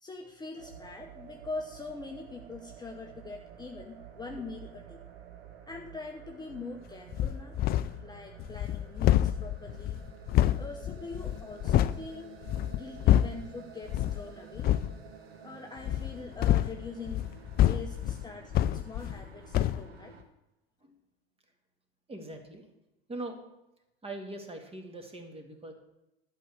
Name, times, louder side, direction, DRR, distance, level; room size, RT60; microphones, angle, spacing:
voice 1, 0.0-5.0 5.7-7.6 8.0-10.0 10.6-12.3 12.7-14.8 15.4-17.2 17.7-20.2, left 4 dB, 15° left, 2 dB, 0.9 m, -43 dB
sound 1, 0.5-20.2, right 8 dB, 75° right, 1.5 m, -51 dB
sound 2, 7.1-8.1 8.4-12.0 12.4-13.5 13.9-14.2 14.6-14.9 15.8-19.3 19.5-19.9, left 12 dB, 30° left, 0.4 m, -27 dB
voice 2, 22.1-22.7 23.1-23.4 24.0-25.7, right 2 dB, 20° right, 4 dB, 2.1 m, -42 dB
11.0 x 5.3 x 8.2 m, 0.91 s
hypercardioid pair, 80°, 31 cm